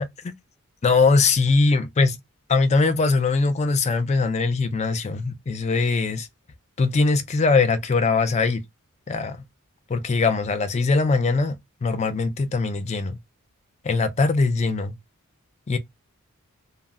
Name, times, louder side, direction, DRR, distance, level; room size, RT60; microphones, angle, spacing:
voice 1, 0.8-2.2 2.5-6.3 6.8-8.6 9.1-9.4 9.9-11.6 11.8-13.2 13.8-14.9 15.7-15.8, left 4 dB, 30° left, 0.4 m, -21 dB
2.3 x 2.0 x 3.5 m
head